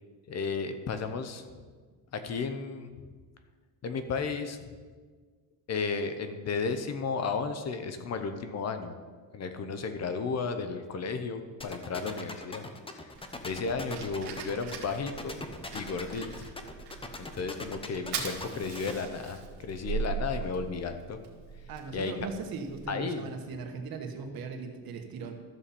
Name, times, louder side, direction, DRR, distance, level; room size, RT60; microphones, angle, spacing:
voice 1, 0.3-1.4 2.1-2.9 3.8-4.6 5.7-8.9 9.3-12.6 12.9-13.1 13.4-15.4 15.7-16.5 17.2-21.2 21.9-22.1 22.9-23.3, left 4 dB, 40° left, 8 dB, 0.9 m, -33 dB
sound 1, 11.6-18.9, left 2 dB, 15° left, 0.8 m, -40 dB
Fire, 13.1-22.8, right 6 dB, 85° right, 1.7 m, -40 dB
voice 2, 21.7-25.3, right 4 dB, 65° right, 4 dB, 1.4 m, -39 dB
13.0 x 7.1 x 4.3 m, 1.5 s
cardioid pair, 125°, 39 cm